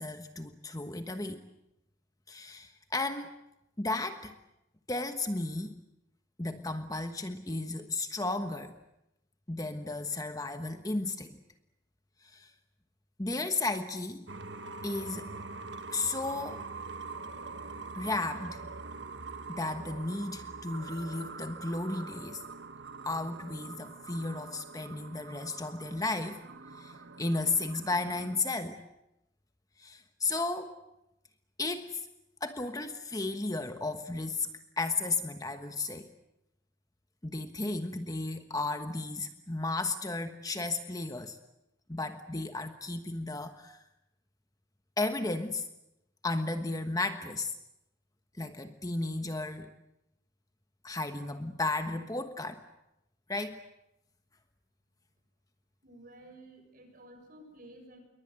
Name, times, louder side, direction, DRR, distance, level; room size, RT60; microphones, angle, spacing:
voice 1, 0.0-1.5 2.3-3.3 3.8-4.3 4.9-5.8 6.4-8.7 9.5-11.4 12.2-12.5 13.2-14.3 14.8-15.3 15.9-16.7 18.0-18.6 19.5-22.4 23.0-26.4 26.8-28.8 29.8-30.7 31.6-32.1 32.4-36.1 37.2-41.4 41.9-43.8 45.0-45.7 46.2-47.5 48.4-49.7 50.8-52.6 53.3-53.6, left 2 dB, 20° left, 8 dB, 1.2 m, -34 dB
sound 1, 14.3-28.4, right 4 dB, 60° right, 1.4 m, -44 dB
voice 2, 55.8-58.0, right 1 dB, 45° right, 5 dB, 7.1 m, -52 dB
28.0 x 23.0 x 7.9 m, 0.86 s
head